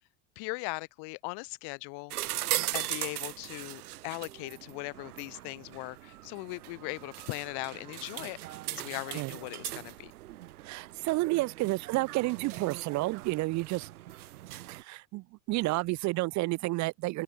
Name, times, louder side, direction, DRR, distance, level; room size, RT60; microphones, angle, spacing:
voice 1, 0.4-2.1 2.7-10.1, left 32 dB, 65° left, 2.1 m, -39 dB
sound 1, 2.1-14.8, right 15 dB, 90° right, 2.7 m, -39 dB
voice 2, 10.6-13.9 14.7-17.2, right 21 dB, 40° right, 0.5 m, -30 dB
open air
supercardioid pair, 100°, 43 cm